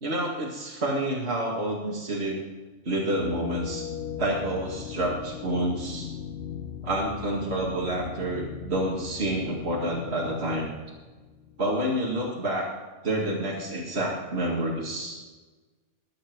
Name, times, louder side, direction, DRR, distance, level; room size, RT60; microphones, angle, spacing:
voice 1, 0.0-2.4 2.9-3.8 4.2-6.1 6.8-10.7 11.6-12.7 13.0-15.2, right 1 dB, 50° right, -4 dB, 2.5 m, -28 dB
sound 1, 3.2-11.9, left 8 dB, 55° left, 0.9 m, -39 dB
22.5 x 7.6 x 4.7 m, 1.3 s
omnidirectional pair, 1.4 m